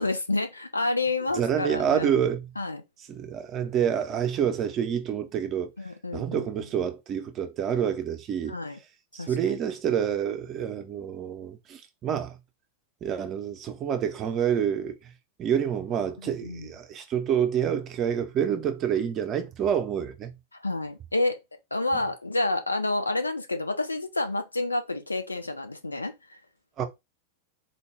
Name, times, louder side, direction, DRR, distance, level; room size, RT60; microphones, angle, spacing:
voice 1, 0.0-2.1 2.6-2.8 5.8-6.5 8.5-8.8 9.2-9.3 16.2-16.7 20.6-21.4 21.7-26.4, left 2 dB, 80° left, 0.6 m, -29 dB
voice 2, 1.3-2.5 3.1-5.7 6.1-8.6 9.1-12.4 13.0-15.1 15.4-20.3 26.8-26.9, right 8 dB, 30° right, 0.7 m, -28 dB
4.1 x 2.2 x 3.3 m
figure-of-eight pair, 90°, 0 cm